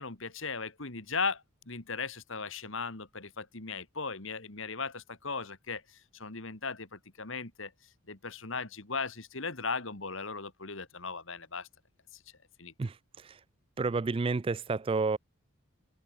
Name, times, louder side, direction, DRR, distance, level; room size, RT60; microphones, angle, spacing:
voice 1, 0.0-7.7 8.1-11.7 12.1-12.2 12.6-12.7, left 4 dB, 60° left, 2.4 m, -37 dB
voice 2, 12.8-13.4 13.8-15.2, right 4 dB, 25° right, 0.3 m, -30 dB
head